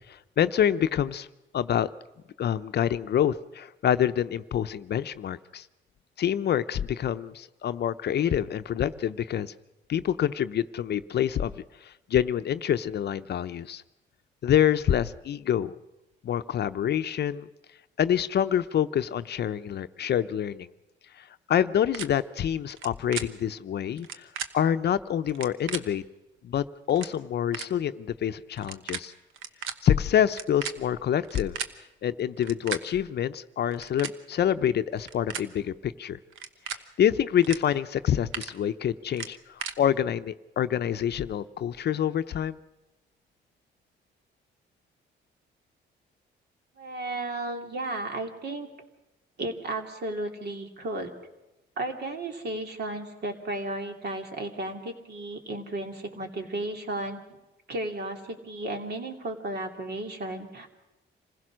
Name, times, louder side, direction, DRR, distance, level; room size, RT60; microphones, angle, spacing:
voice 1, 0.1-1.3 1.5-1.9 2.4-5.7 6.2-9.5 9.9-13.8 14.4-15.7 16.2-17.5 18.0-20.7 21.5-24.3 24.5-26.0 26.4-29.1 29.8-31.6 32.0-36.2 36.7-42.6, left 9 dB, 55° left, 12 dB, 0.7 m, -26 dB
sound 1, 21.9-22.1 22.7-22.9 23.1-23.3 24.0-24.5 25.3-25.8 26.6-26.7 26.9-27.1 27.5-27.7 28.6-29.0 29.3-29.7 30.3-31.7 32.4-32.8 33.7-34.1 34.9-35.5 36.3-36.8 37.4-37.6 37.9-38.5 39.1-39.7, right 8 dB, 85° right, 1.1 m, -35 dB
voice 2, 46.8-48.7 49.4-51.1 51.8-57.2 57.7-60.7, right 2 dB, 55° right, 3 dB, 2.9 m, -34 dB
26.5 x 16.0 x 6.3 m, 1.0 s
cardioid pair, 90°, 20 cm